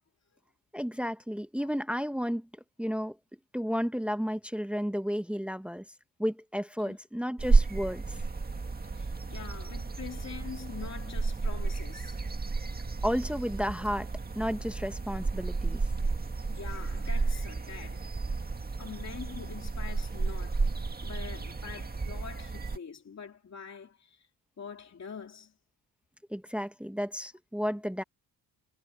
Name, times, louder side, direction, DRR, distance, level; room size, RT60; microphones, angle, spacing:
voice 1, 0.7-2.5 2.8-3.1 3.5-5.8 6.2-8.0 13.0-14.1 14.3-15.8 26.3-28.0, equal, 5° right, 1.2 m, -32 dB
sound 1, 7.4-22.8, right 3 dB, 25° right, 1.8 m, -32 dB
voice 2, 8.8-12.3 16.5-18.1 18.8-24.3 24.6-25.5, left 6 dB, 45° left, 2.8 m, -45 dB
cardioid pair, 125°, 39 cm